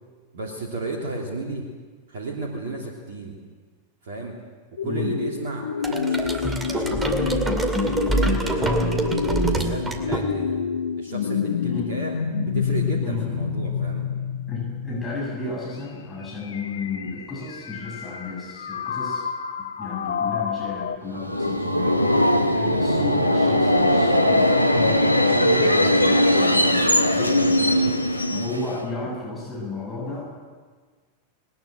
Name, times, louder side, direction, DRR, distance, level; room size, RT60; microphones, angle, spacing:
voice 1, 0.3-1.7 2.1-3.4 4.0-4.4 4.7-10.6 11.0-12.1 12.4-14.1, right 2 dB, 55° right, -1 dB, 3.0 m, -33 dB
sound 1, 4.8-21.0, left 7 dB, 65° left, 1.1 m, -28 dB
voice 2, 4.8-5.1 8.9-9.0 11.6-11.9 13.0-13.2 14.5-19.2 19.8-30.2, left 3 dB, 10° left, -5 dB, 7.8 m, -33 dB
sound 2, 5.8-10.7, right 2 dB, 15° right, 2.4 m, -25 dB
Subway metro underground, 21.1-28.9, left 1 dB, 90° left, 1.1 m, -19 dB
20.5 x 20.0 x 7.9 m, 1.5 s
figure-of-eight pair, 90°, 0 cm